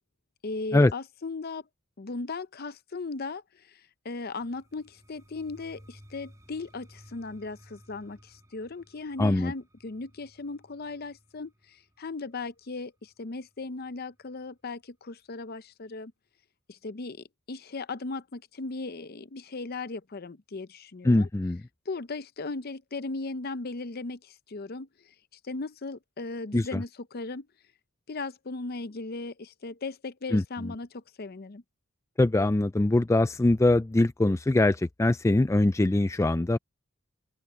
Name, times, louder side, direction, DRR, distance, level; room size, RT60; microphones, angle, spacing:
voice 1, 0.4-1.6 2.0-16.1 16.7-21.3 21.9-25.1 25.4-27.5 28.1-31.6, left 3 dB, 50° left, 0.7 m, -37 dB
sound 1, 4.4-14.2, equal, 15° right, 2.9 m, -57 dB
voice 2, 9.2-9.5 21.0-21.6 26.5-26.8 30.3-30.7 32.2-36.6, left 2 dB, 15° left, 0.3 m, -23 dB
open air
head